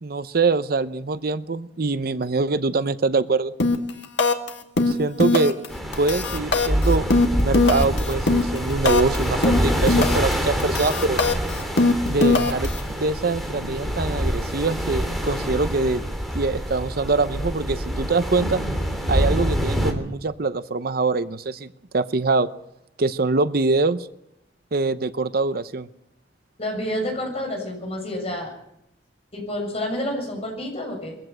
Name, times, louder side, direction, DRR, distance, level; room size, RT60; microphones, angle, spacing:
voice 1, 0.0-3.5 4.8-5.6 6.0-7.0 7.3-11.2 12.1-12.7 12.9-16.0 16.3-18.6 19.1-21.7 21.9-22.5 23.0-24.1 24.7-25.9, right 3 dB, 60° right, 13 dB, 0.7 m, -23 dB
sound 1, 3.6-3.9 4.2-4.5 4.8-5.7 5.9-9.2 9.4-10.3 10.6-12.8, left 3 dB, 80° left, 1.9 m, -20 dB
sound 2, 5.7-19.9, equal, ahead, 3.1 m, -26 dB
voice 2, 26.6-28.5 29.3-31.2, left 1 dB, 35° left, 2 dB, 7.1 m, -29 dB
22.5 x 15.5 x 8.0 m, 0.82 s
head